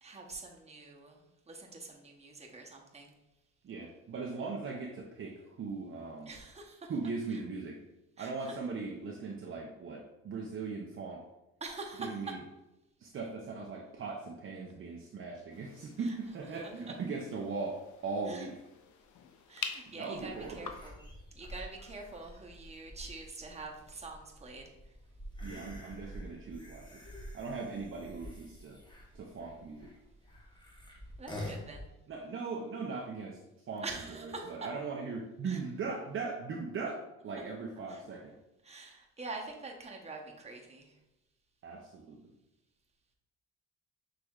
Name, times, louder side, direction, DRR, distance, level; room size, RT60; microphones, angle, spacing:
voice 1, 0.0-3.1 6.3-6.9 7.3-7.4 8.2-8.6 11.6-12.3 16.0-16.2 18.3-18.5 19.5-21.0 21.3-24.7 31.2-31.9 33.8-34.7 35.4-35.6 37.9-38.0 38.6-40.9, right 3 dB, 20° right, 0 dB, 0.9 m, -45 dB
voice 2, 3.6-6.3 6.9-7.8 8.2-11.2 12.0-12.4 13.0-18.6 19.9-20.7 25.4-27.0 27.3-28.8 29.1-29.9 32.1-33.4 33.7-33.8 34.2-38.3 41.6-42.3, right 4 dB, 45° right, -1 dB, 0.6 m, -39 dB
sound 1, 15.5-20.9, left 7 dB, 70° left, 0.5 m, -47 dB
sound 2, 20.1-31.9, equal, 15° left, 1.0 m, -48 dB
6.3 x 3.3 x 2.4 m, 0.93 s
cardioid pair, 90°, 30 cm